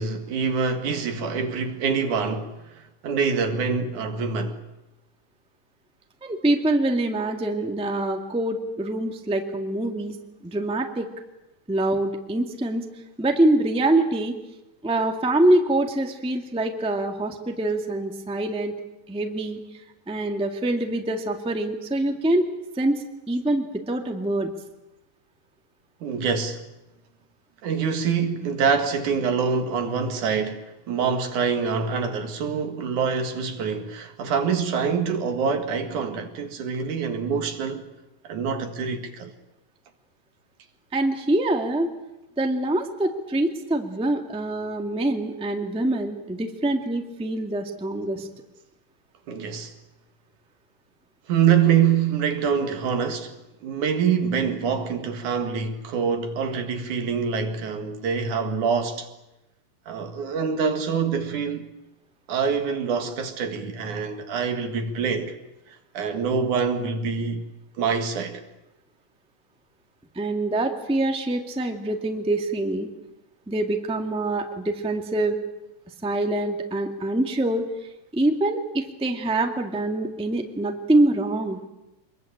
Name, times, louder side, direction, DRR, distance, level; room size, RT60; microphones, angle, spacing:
voice 1, 0.0-4.6 26.0-26.6 27.6-37.9 38.2-39.3 49.3-49.7 51.3-59.1 59.9-61.7 62.3-65.4 65.9-67.4 67.8-68.4, right 6 dB, 70° right, 3.2 m, -25 dB
voice 2, 6.2-10.2 10.4-11.1 11.7-12.8 13.2-14.3 14.8-18.8 19.1-22.5 22.7-24.5 40.9-41.9 42.4-48.3 70.1-72.9 73.5-75.4 76.0-77.6 78.1-81.6, right 1 dB, 5° right, 1.3 m, -25 dB
25.5 x 21.5 x 8.8 m
omnidirectional pair, 3.7 m